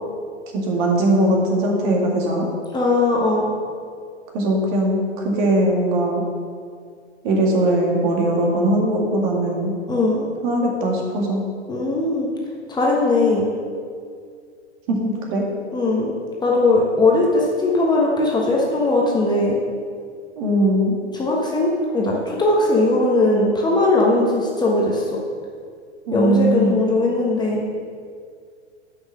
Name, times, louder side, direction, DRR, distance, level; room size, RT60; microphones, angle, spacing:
voice 1, 0.7-2.5 4.3-5.0 5.2-6.2 7.2-9.7 10.4-11.4 14.9-15.4 20.4-21.0 26.1-26.8, right 1 dB, 45° right, -1 dB, 2.0 m, -20 dB
voice 2, 2.7-3.5 9.9-10.2 11.7-12.3 12.7-13.5 15.7-16.1 16.4-19.6 21.1-25.1 26.1-27.6, left 2 dB, 10° left, -3 dB, 1.1 m, -19 dB
7.6 x 5.8 x 6.5 m, 2.2 s
figure-of-eight pair, 110°, 34 cm